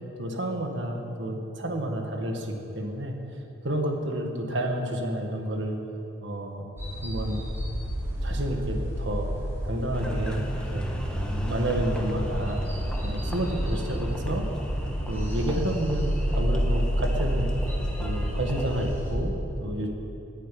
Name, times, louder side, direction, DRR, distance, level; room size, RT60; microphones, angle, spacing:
voice 1, 0.2-3.2 3.6-5.8 6.2-6.7 7.0-7.4 8.2-9.3 9.6-10.9 11.4-12.7 13.0-14.4 15.1-17.5 18.0-19.9, right 1 dB, 60° right, 2 dB, 1.7 m, -30 dB
sound 1, 6.8-19.1, equal, 10° right, 3.2 m, -30 dB
Engine, 9.9-18.9, equal, 5° left, 1.3 m, -37 dB
11.0 x 9.9 x 9.3 m, 2.9 s
head